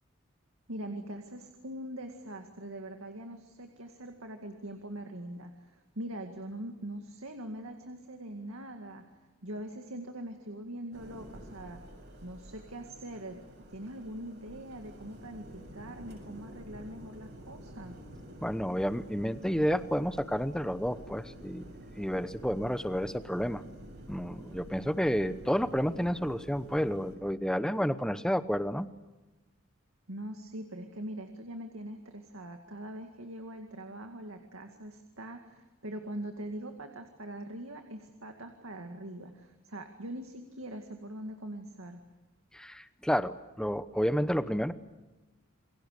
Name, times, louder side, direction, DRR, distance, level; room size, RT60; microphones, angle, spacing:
voice 1, 0.7-9.0 9.4-11.8 12.2-13.4 13.7-17.9 30.1-42.0, right 1 dB, 75° right, 5 dB, 2.1 m, -42 dB
sound 1, 10.9-27.2, equal, 50° right, 7.6 m, -49 dB
voice 2, 18.4-21.6 22.0-23.6 24.1-28.9 42.5-44.7, equal, 5° left, 12 dB, 0.8 m, -30 dB
28.5 x 22.5 x 6.7 m, 1.2 s
head